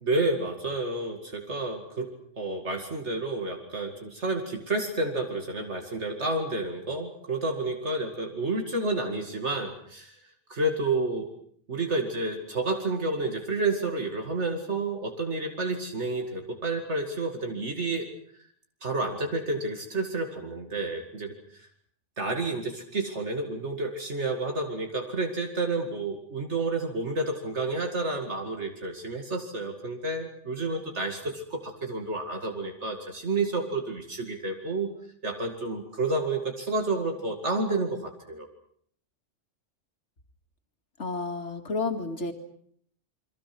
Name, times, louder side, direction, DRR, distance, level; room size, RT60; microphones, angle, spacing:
voice 1, 0.0-10.2 10.5-11.3 11.7-18.1 18.8-21.7 22.2-34.9 35.2-38.5, right 2 dB, 70° right, 3 dB, 2.6 m, -30 dB
voice 2, 41.0-42.3, left 3 dB, 75° left, 6 dB, 2.6 m, -31 dB
29.5 x 22.5 x 6.1 m, 0.62 s
omnidirectional pair, 1.2 m